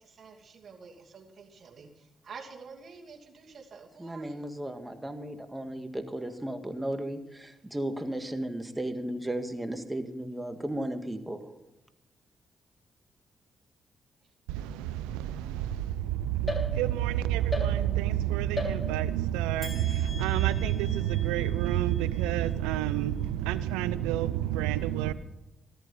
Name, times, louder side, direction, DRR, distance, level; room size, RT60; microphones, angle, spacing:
voice 1, 0.0-4.6 14.2-14.3, right 5 dB, 55° right, 2 dB, 2.6 m, -49 dB
voice 2, 4.0-11.5, right 1 dB, 15° right, 7 dB, 2.0 m, -35 dB
voice 3, 14.5-25.1, right 12 dB, 85° right, 16 dB, 0.6 m, -28 dB
sound 1, 16.5-17.1 17.5-18.2 18.6-19.2 19.6-23.1, left 2 dB, 25° left, 6.4 m, -39 dB
14.0 x 13.5 x 5.6 m, 0.93 s
hypercardioid pair, 45°, 0 cm